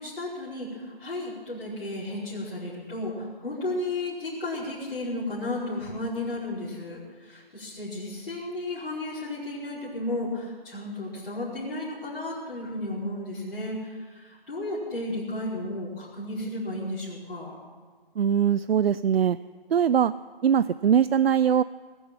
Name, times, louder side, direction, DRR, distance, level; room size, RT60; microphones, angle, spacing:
voice 1, 0.0-17.6, left 1 dB, 70° left, -10 dB, 5.0 m, -33 dB
voice 2, 18.2-19.4 19.7-20.1 20.4-21.6, right 8 dB, 75° right, 14 dB, 0.5 m, -21 dB
20.0 x 7.0 x 8.9 m, 1.5 s
figure-of-eight pair, 165°, 30 cm